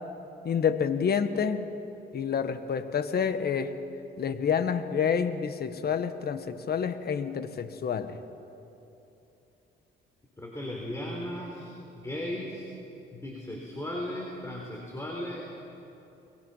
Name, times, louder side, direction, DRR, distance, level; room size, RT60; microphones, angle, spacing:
voice 1, 0.4-1.7 2.1-3.7 4.2-8.2, left 7 dB, 50° left, 10 dB, 1.4 m, -28 dB
voice 2, 10.4-12.7 13.1-15.5, left 1 dB, 15° left, -1 dB, 4.0 m, -36 dB
29.5 x 22.0 x 5.7 m, 3.0 s
cardioid pair, 90°, 20 cm